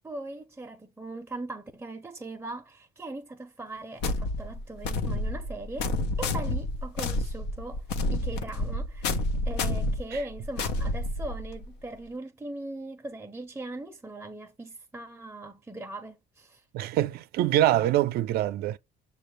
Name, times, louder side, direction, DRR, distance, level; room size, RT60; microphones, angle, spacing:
voice 1, 0.0-5.9 6.2-7.8 8.1-16.6, right 2 dB, 10° right, 0.5 m, -40 dB
sound 1, 4.0-11.7, left 2 dB, 90° left, 0.7 m, -29 dB
voice 2, 16.7-18.8, right 13 dB, 70° right, 0.4 m, -24 dB
6.5 x 2.3 x 3.2 m
cardioid pair, 110°, 17 cm